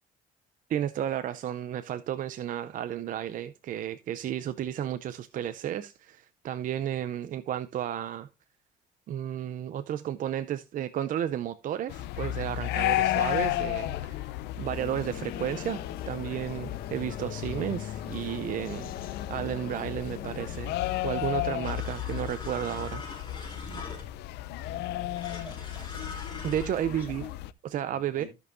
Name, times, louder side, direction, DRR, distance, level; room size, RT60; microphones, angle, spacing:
voice 1, 0.7-8.3 9.1-18.9 19.3-20.7 21.0-23.0 26.4-27.3 27.6-28.3, right 10 dB, 50° right, 0.5 m, -33 dB
sound 1, 11.9-27.5, left 15 dB, 80° left, 0.5 m, -33 dB
sound 2, 14.7-22.2, left 9 dB, 60° left, 1.0 m, -41 dB
sound 3, 21.6-24.3 25.1-26.7, left 3 dB, 25° left, 2.7 m, -42 dB
voice 2, 25.3-26.4 26.9-27.3 27.9-28.3, right 3 dB, 10° right, 5.9 m, -50 dB
15.0 x 5.4 x 2.6 m
cardioid pair, 110°, 17 cm